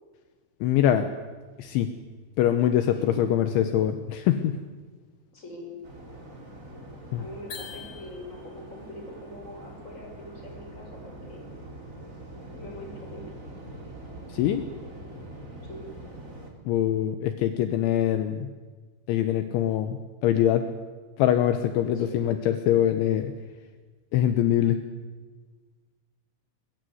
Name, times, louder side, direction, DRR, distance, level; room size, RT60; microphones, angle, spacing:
voice 1, 0.6-1.1 1.6-1.9 2.4-4.6 7.1-7.3 14.3-14.7 16.7-18.5 19.1-20.7 21.2-23.3 24.1-24.8, left 11 dB, 75° left, 9 dB, 3.4 m, -23 dB
voice 2, 2.9-3.2 5.3-5.7 7.1-11.5 12.5-13.2 15.6-15.8 21.9-22.3, left 1 dB, 15° left, 2 dB, 5.5 m, -43 dB
Waves surf, 5.8-16.5, right 1 dB, 20° right, 3.6 m, -44 dB
sound 1, 7.5-8.6, left 6 dB, 40° left, 3.6 m, -43 dB
22.0 x 21.5 x 9.5 m, 1.4 s
omnidirectional pair, 5.7 m